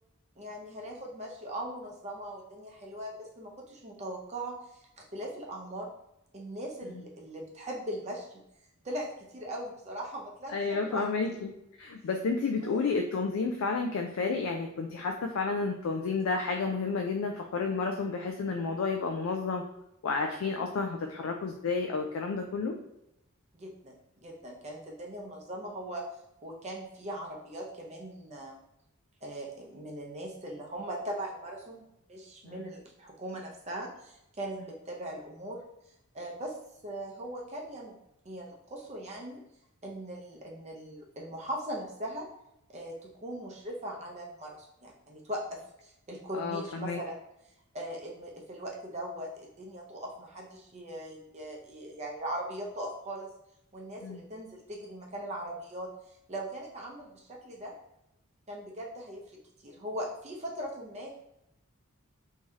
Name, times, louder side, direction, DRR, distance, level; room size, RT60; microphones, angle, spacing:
voice 1, 0.4-5.9 6.3-8.4 8.8-11.1 12.6-12.8 23.5-26.0 26.4-28.6 29.2-31.8 32.1-35.6 36.1-36.6 36.8-38.0 38.2-39.4 39.8-42.3 42.7-47.2 47.7-53.3 53.7-55.9 56.3-57.7 58.5-61.1, right 1 dB, 30° right, 0 dB, 0.6 m, -40 dB
voice 2, 10.5-11.5 11.8-19.6 20.0-22.7 32.4-32.6 46.3-47.0 54.0-54.2, left 4 dB, 80° left, 3 dB, 0.4 m, -31 dB
3.1 x 2.7 x 3.5 m, 0.84 s
head